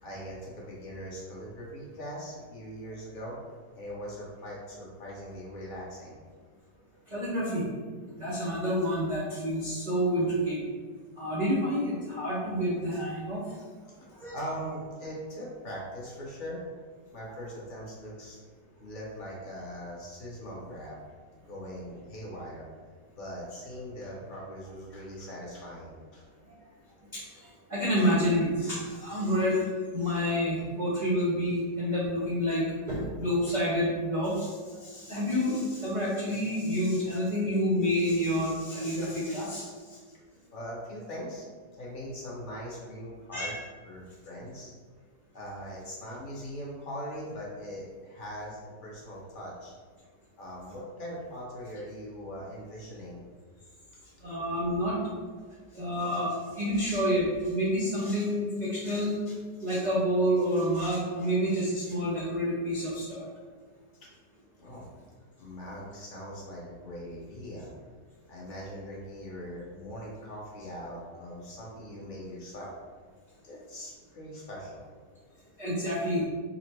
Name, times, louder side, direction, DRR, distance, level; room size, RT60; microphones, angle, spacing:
voice 1, 0.0-3.4 3.7-6.2 14.3-16.6 17.1-18.4 18.7-21.0 21.4-22.7 23.1-26.3 40.5-41.4 41.8-43.6 43.8-44.7 45.3-49.7 50.4-53.2 64.6-64.9 65.4-67.7 68.3-72.7 73.4-74.9, equal, 35° left, -5 dB, 0.9 m, -41 dB
voice 2, 7.1-7.7 8.1-10.6 11.2-13.4 14.2-14.3 27.1-29.6 29.9-39.7 43.3-43.5 54.2-55.0 55.7-59.3 59.6-63.3 75.6-76.2, equal, 65° right, -7 dB, 0.4 m, -28 dB
3.9 x 2.1 x 4.4 m, 1.5 s
omnidirectional pair, 1.9 m